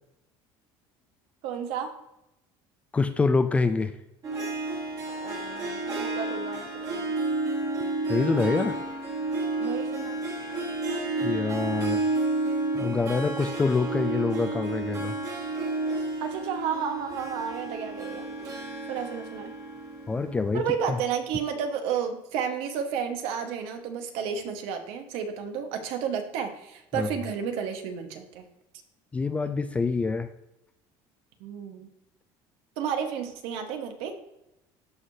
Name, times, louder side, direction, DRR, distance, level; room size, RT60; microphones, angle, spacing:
voice 1, 1.4-2.0 5.1-7.1 9.6-10.2 16.2-18.3 18.9-19.5 20.5-28.4 31.4-31.9 32.8-34.2, right 7 dB, 70° right, 6 dB, 1.3 m, -32 dB
voice 2, 2.9-3.9 8.1-8.8 11.2-12.0 12.7-15.2 20.1-20.6 20.9-21.0 27.0-27.1 29.1-30.3, left 4 dB, 15° left, 10 dB, 0.4 m, -26 dB
Harp, 4.2-20.7, right 2 dB, 35° right, 1.8 m, -31 dB
13.5 x 4.8 x 2.8 m, 0.86 s
cardioid pair, 155°, 10 cm